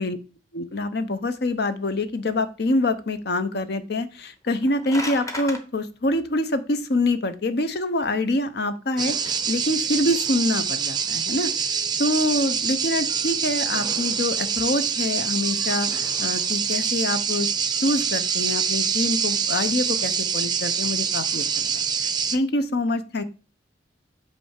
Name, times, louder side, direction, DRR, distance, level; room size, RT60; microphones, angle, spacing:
voice 1, 0.5-11.5 12.0-17.5 17.8-23.2, left 2 dB, 60° left, 11 dB, 0.8 m, -25 dB
sound 1, 4.5-5.6, left 1 dB, 20° left, 0.9 m, -33 dB
sound 2, 9.0-22.4, right 7 dB, 25° right, 0.6 m, -25 dB
8.4 x 3.3 x 6.4 m, 0.34 s
head